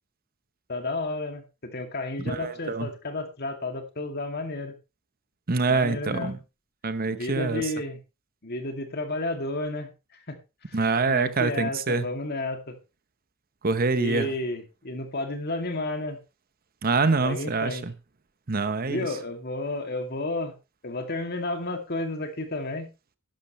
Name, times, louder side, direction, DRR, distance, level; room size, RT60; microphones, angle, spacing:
voice 1, 0.7-4.7 5.7-6.4 7.1-8.0 8.4-9.9 10.3-10.4 10.7-10.8 11.1-12.7 14.0-16.2 17.2-17.9 18.9-20.5 20.8-22.9, left 2 dB, 50° left, 2.4 m, -32 dB
voice 2, 2.2-2.9 5.5-6.3 6.8-7.7 10.7-12.1 13.6-14.3 16.8-17.9 18.5-19.1, right 3 dB, 45° right, 0.9 m, -25 dB
12.0 x 11.5 x 3.1 m
head